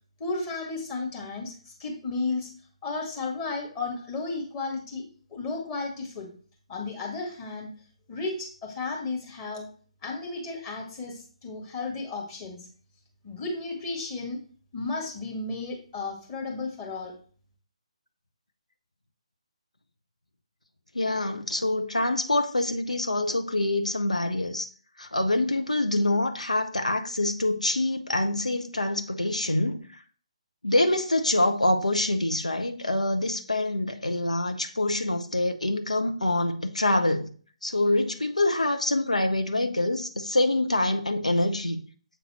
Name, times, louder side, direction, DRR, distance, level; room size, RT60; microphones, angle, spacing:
voice 1, 0.2-2.5 2.8-6.3 6.7-7.7 8.1-9.7 10.0-12.7 13.2-14.4 14.7-17.1, left 3 dB, 20° left, 1.9 m, -33 dB
voice 2, 20.9-24.7 25.0-30.0 30.6-37.3 37.6-41.8, left 2 dB, 80° left, 0.9 m, -25 dB
7.6 x 4.0 x 4.3 m
figure-of-eight pair, 140°, 4 cm